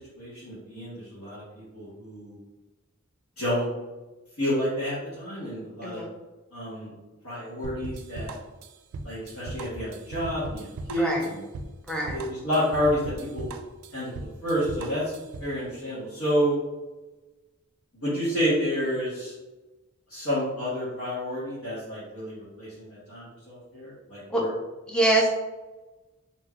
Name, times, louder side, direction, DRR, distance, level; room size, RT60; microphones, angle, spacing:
voice 1, 0.1-2.4 3.4-3.7 4.4-6.0 6.5-6.9 7.2-8.3 9.0-11.4 12.1-13.5 13.9-14.1 14.4-15.0 15.4-16.6 18.0-19.3 20.1-24.5, equal, 80° left, -11 dB, 1.2 m, -29 dB
sound 1, 7.6-15.5, right 2 dB, 90° right, 0.3 m, -38 dB
voice 2, 24.9-25.3, right 1 dB, 5° left, -2 dB, 0.5 m, -24 dB
2.8 x 2.2 x 3.5 m, 1.1 s
head